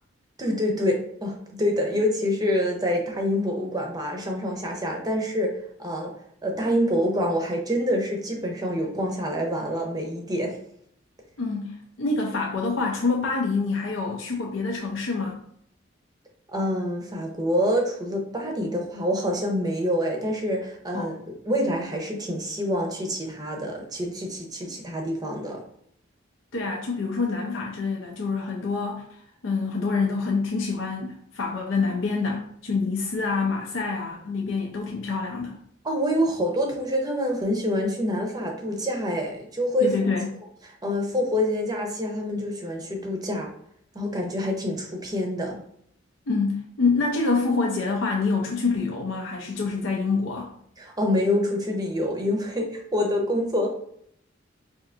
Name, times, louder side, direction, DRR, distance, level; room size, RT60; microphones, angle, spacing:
voice 1, 0.4-6.1 6.4-10.6 16.5-25.6 35.8-39.9 40.8-43.5 43.9-45.6 50.8-53.7, equal, 20° right, 1 dB, 0.6 m, -26 dB
voice 2, 11.4-15.4 20.9-21.1 26.5-35.6 39.8-40.3 46.3-50.5, left 4 dB, 75° left, -1 dB, 0.6 m, -26 dB
4.4 x 2.7 x 2.5 m, 0.69 s
head